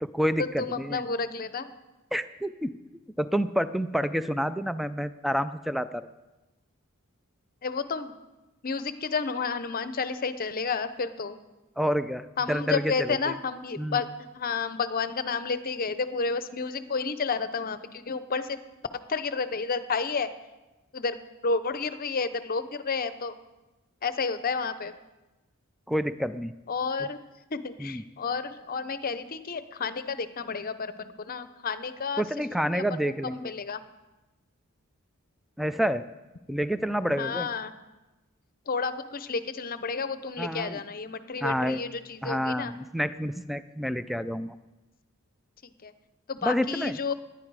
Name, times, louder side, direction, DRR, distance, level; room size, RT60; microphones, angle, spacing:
voice 1, 0.0-1.0 2.1-2.7 3.2-6.1 11.8-13.4 13.8-14.0 25.9-26.5 27.0-27.1 27.8-28.0 32.2-33.5 35.6-36.0 36.5-37.5 40.4-40.8 41.4-41.8 42.2-44.6 46.4-47.0, equal, ahead, 12 dB, 0.4 m, -28 dB
voice 2, 0.7-1.7 7.6-8.1 8.6-11.4 12.4-18.6 19.1-20.3 20.9-21.2 21.4-23.3 24.0-24.9 26.7-27.2 27.5-32.2 32.7-32.8 33.3-33.8 37.2-37.7 38.7-42.7 45.6-45.9 46.3-47.1, left 4 dB, 40° left, 12 dB, 0.7 m, -31 dB
19.0 x 10.5 x 4.8 m, 1.1 s
head